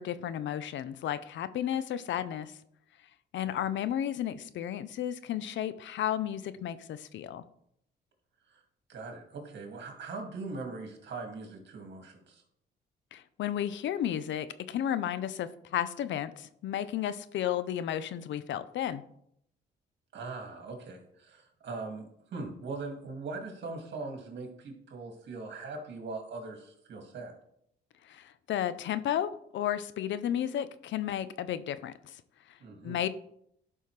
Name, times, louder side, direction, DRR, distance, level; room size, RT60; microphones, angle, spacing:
voice 1, 0.0-2.5 3.3-7.4 13.1-19.0 28.0-32.2 32.8-33.1, left 10 dB, 70° left, 14 dB, 0.6 m, -33 dB
voice 2, 8.9-12.4 20.1-27.3 32.6-33.0, right 3 dB, 60° right, 3 dB, 2.1 m, -41 dB
11.0 x 5.5 x 3.2 m, 0.72 s
cardioid pair, 90°, 20 cm